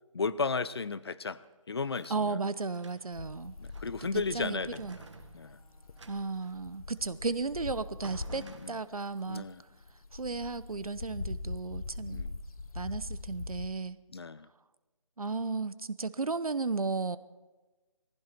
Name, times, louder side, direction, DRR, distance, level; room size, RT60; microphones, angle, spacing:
voice 1, 0.1-1.4 1.7-2.4 3.6-4.9 5.3-5.6 8.3-8.8 9.3-9.6 12.0-12.4 14.1-14.5, left 4 dB, 45° left, 17 dB, 0.6 m, -34 dB
sound 1, 0.9-2.2 2.6-3.2 3.6-4.1 4.5-6.6 7.6-7.7 8.0-9.2, right 4 dB, 55° right, 1.6 m, -53 dB
voice 2, 2.1-3.5 4.1-5.0 6.1-9.4 10.1-12.2 12.7-14.0 15.2-17.2, right 4 dB, 90° right, 15 dB, 0.9 m, -34 dB
sound 2, 3.1-8.6 9.1-13.7, left 3 dB, 85° left, 1.1 m, -42 dB
19.0 x 15.5 x 4.5 m, 1.2 s
figure-of-eight pair, 165°, 18 cm